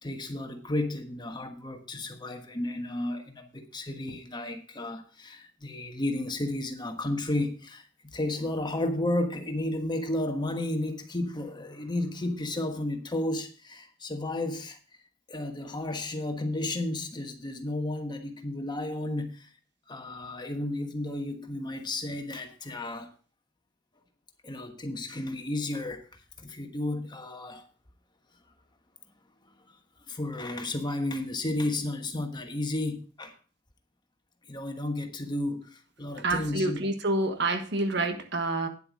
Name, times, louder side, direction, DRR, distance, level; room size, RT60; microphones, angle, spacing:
voice 1, 0.0-7.8 8.1-14.8 15.3-19.5 19.9-23.1 24.4-26.1 26.4-27.7 30.1-33.3 34.5-36.8, left 1 dB, 20° left, 1.3 m, -32 dB
voice 2, 36.2-38.7, right 2 dB, 60° right, 1.4 m, -28 dB
10.0 x 8.0 x 4.8 m
head